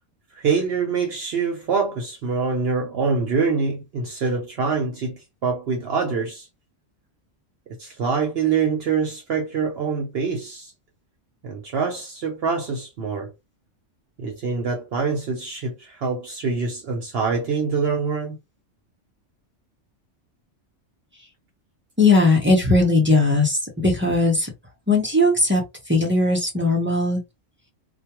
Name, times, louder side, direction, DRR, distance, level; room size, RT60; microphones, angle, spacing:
voice 1, 0.3-6.5 7.8-10.7 11.4-13.3 14.2-18.4, right 5 dB, 60° right, 0.8 m, -25 dB
voice 2, 22.0-24.5 24.9-25.6 25.9-27.2, left 2 dB, 15° right, 0.5 m, -18 dB
2.2 x 2.2 x 2.9 m
omnidirectional pair, 1.3 m